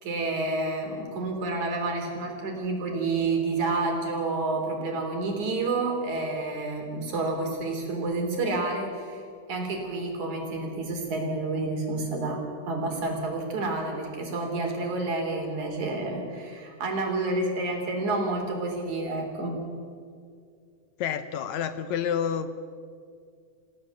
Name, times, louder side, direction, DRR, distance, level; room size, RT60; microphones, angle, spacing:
voice 1, 0.0-9.2 9.5-12.4 12.7-19.6, right 3 dB, 65° right, 2 dB, 4.9 m, -29 dB
voice 2, 21.0-22.6, left 8 dB, 70° left, 11 dB, 2.0 m, -29 dB
27.5 x 16.5 x 7.4 m, 2.3 s
omnidirectional pair, 3.7 m